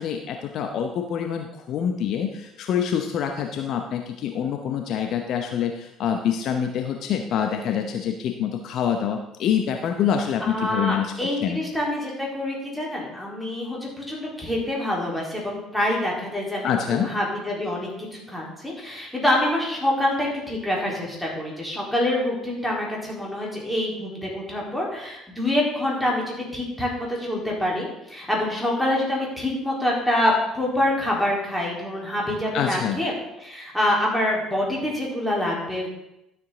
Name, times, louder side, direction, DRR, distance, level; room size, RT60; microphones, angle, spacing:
voice 1, 0.0-11.1 11.4-11.6 16.6-17.1 32.5-33.0, left 8 dB, 55° left, 5 dB, 0.8 m, -26 dB
voice 2, 10.4-13.8 14.1-33.1 33.4-35.9, left 1 dB, 5° left, -4 dB, 4.0 m, -26 dB
12.5 x 7.3 x 3.9 m, 0.88 s
figure-of-eight pair, 55°, 0 cm